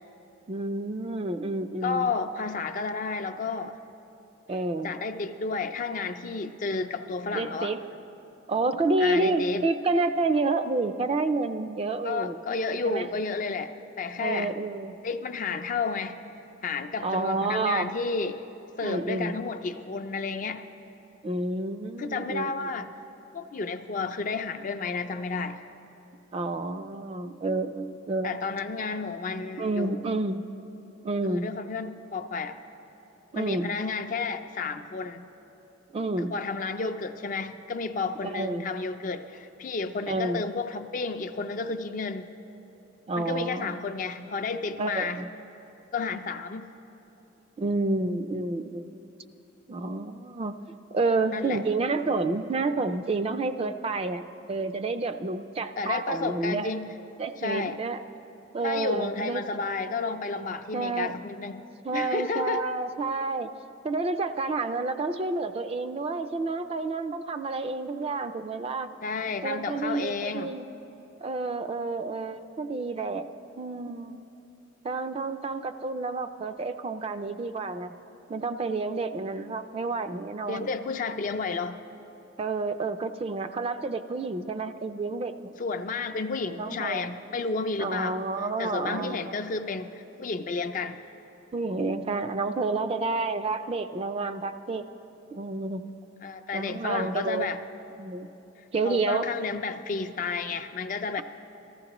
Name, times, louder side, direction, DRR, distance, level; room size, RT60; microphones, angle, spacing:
voice 1, 0.5-2.1 4.5-4.9 7.3-7.9 8.5-12.4 12.9-13.1 14.2-15.0 17.0-17.9 18.8-19.4 21.2-22.7 26.3-28.4 29.6-30.4 31.0-31.5 33.3-33.7 35.9-36.3 38.2-38.7 40.1-40.4 43.1-43.8 44.8-45.3 47.6-49.0 49.7-50.6 50.9-56.7 57.2-58.0 58.5-59.4 60.7-61.1 61.8-63.5 63.8-68.9 69.4-70.7 71.2-73.3 73.6-74.2 74.8-77.9 78.3-80.7 82.4-85.5 86.6-87.1 87.8-89.3 91.5-94.8 95.3-95.8 96.5-97.5 98.0-98.3 98.7-99.3, right 3 dB, 30° right, 9 dB, 0.3 m, -29 dB
voice 2, 1.8-3.8 4.8-7.7 9.0-9.6 12.0-14.5 15.0-16.2 16.6-18.4 18.8-20.6 22.0-22.9 23.3-25.7 28.2-30.0 31.3-32.6 33.3-35.3 36.2-42.3 43.1-45.2 45.9-46.7 51.3-51.6 55.8-56.9 57.4-57.8 58.6-61.6 61.9-62.7 69.0-70.5 80.5-81.8 85.6-88.2 88.6-91.0 96.2-97.6 98.8-101.2, left 4 dB, 45° left, 8 dB, 0.4 m, -31 dB
19.0 x 14.5 x 3.0 m, 2.9 s
head